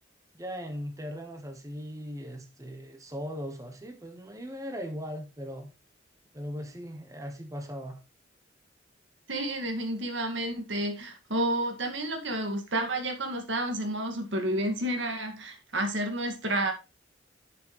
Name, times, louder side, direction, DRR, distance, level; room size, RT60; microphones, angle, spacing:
voice 1, 0.3-5.7 6.3-8.0, equal, 20° right, 1.2 m, -39 dB
voice 2, 9.3-16.7, right 1 dB, 80° right, 2.0 m, -30 dB
11.0 x 6.2 x 3.1 m
head